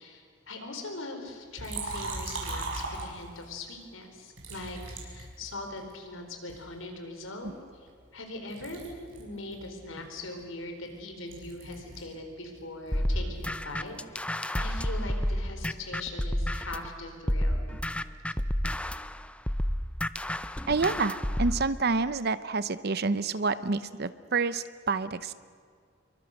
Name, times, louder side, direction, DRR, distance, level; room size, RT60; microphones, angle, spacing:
voice 1, 0.0-17.7, left 2 dB, 90° left, 5 dB, 4.2 m, -41 dB
Liquid, 1.6-3.5 4.4-5.9 6.5-8.2 8.5-12.2 12.5-14.1, right 3 dB, 80° right, 6.3 m, -40 dB
sound 1, 12.9-16.9 17.3-21.6, equal, 5° left, 0.5 m, -30 dB
voice 2, 20.7-25.3, right 4 dB, 55° right, 14 dB, 0.8 m, -28 dB
27.0 x 23.5 x 6.5 m, 2.1 s
head